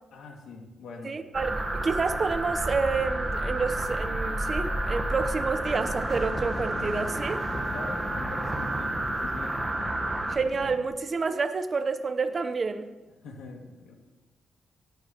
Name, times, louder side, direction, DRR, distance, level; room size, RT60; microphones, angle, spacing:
voice 1, 0.1-1.1 7.7-9.7 13.2-13.9, left 3 dB, 85° left, 1 dB, 2.0 m, -43 dB
voice 2, 1.0-7.4 10.3-12.9, right 4 dB, 40° right, 10 dB, 0.8 m, -29 dB
sound 1, 1.3-10.4, right 1 dB, 15° right, 1.2 m, -30 dB
sound 2, 5.6-10.8, left 2 dB, 45° left, 2.4 m, -39 dB
17.5 x 11.5 x 3.0 m, 1.1 s
cardioid pair, 95°, 0 cm